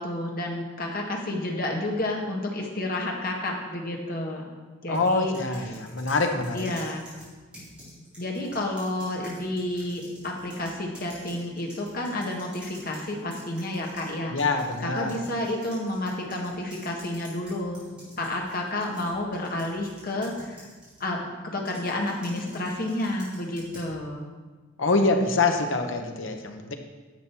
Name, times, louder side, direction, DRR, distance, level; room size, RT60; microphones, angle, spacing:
voice 1, 0.0-4.4 4.8-5.3 6.5-7.0 8.2-14.3 14.8-17.8 18.2-20.7 21.0-21.3 21.5-24.3, left 1 dB, 50° left, 0 dB, 1.7 m, -30 dB
voice 2, 4.9-6.6 14.3-15.1 24.8-26.7, left 3 dB, 75° left, 4 dB, 1.1 m, -25 dB
sound 1, 4.9-14.1 14.4-21.1 21.7-23.9, equal, 5° right, 3.6 m, -48 dB
10.5 x 7.6 x 4.6 m, 1.4 s
head